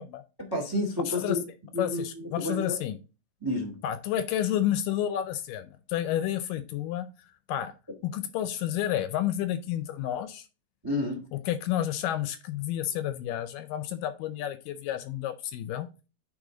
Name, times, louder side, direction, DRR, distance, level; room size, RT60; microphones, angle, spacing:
voice 1, 0.4-1.4 1.7-2.8 3.4-3.8 10.8-11.2, left 1 dB, 30° right, 0.4 m, -30 dB
voice 2, 1.1-1.4 1.8-3.0 3.8-7.1 7.5-7.7 8.0-10.5 11.3-15.9, left 11 dB, 80° left, 2.0 m, -30 dB
9.7 x 3.9 x 3.7 m
omnidirectional pair, 4.1 m